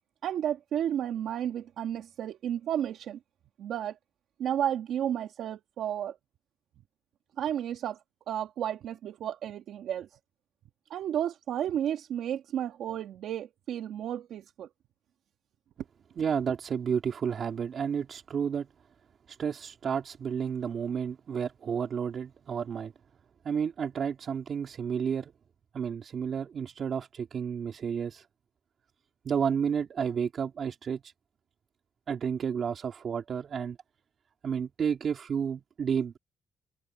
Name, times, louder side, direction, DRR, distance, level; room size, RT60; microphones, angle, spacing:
voice 1, 0.2-3.2 3.6-4.0 4.4-6.1 7.4-8.0 8.3-10.1 10.9-14.7, right 10 dB, 75° right, 1.6 m, -32 dB
voice 2, 16.2-18.7 19.3-22.9 23.4-25.3 25.7-28.3 29.2-31.1 32.1-33.8 34.4-36.2, right 7 dB, 55° right, 3.1 m, -31 dB
cardioid pair, 90°, 0 cm